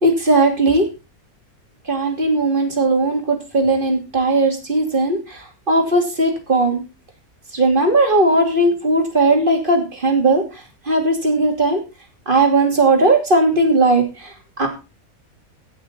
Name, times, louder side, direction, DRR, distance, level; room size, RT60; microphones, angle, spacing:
voice 1, 0.0-0.9 1.9-6.8 7.5-10.4 10.9-11.8 12.3-14.7, right 2 dB, 35° right, 3 dB, 2.9 m, -17 dB
17.0 x 6.5 x 4.0 m, 0.28 s
omnidirectional pair, 1.6 m